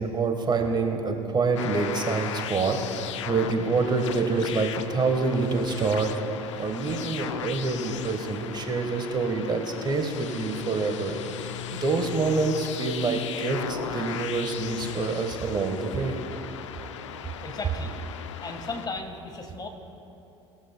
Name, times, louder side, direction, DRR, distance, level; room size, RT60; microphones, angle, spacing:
voice 1, 0.0-2.8 3.3-6.1 6.6-11.2 11.8-16.1, right 4 dB, 30° right, 4 dB, 1.3 m, -26 dB
sound 1, 1.6-18.9, left 9 dB, 80° left, 0.5 m, -36 dB
voice 2, 17.4-17.9 18.4-19.7, left 3 dB, 25° left, 5 dB, 1.5 m, -35 dB
19.5 x 12.5 x 2.2 m, 2.9 s
hypercardioid pair, 65°, 15 cm